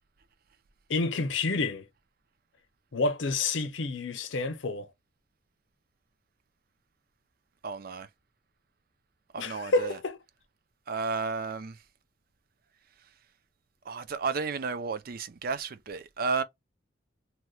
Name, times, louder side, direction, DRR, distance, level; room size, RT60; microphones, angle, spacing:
voice 1, 0.9-1.8 2.9-4.9 9.4-10.2, left 3 dB, 85° left, 0.7 m, -29 dB
voice 2, 7.6-8.1 9.3-10.0 10.9-11.8 13.9-16.4, right 4 dB, 55° right, 0.5 m, -32 dB
3.0 x 2.2 x 3.0 m
head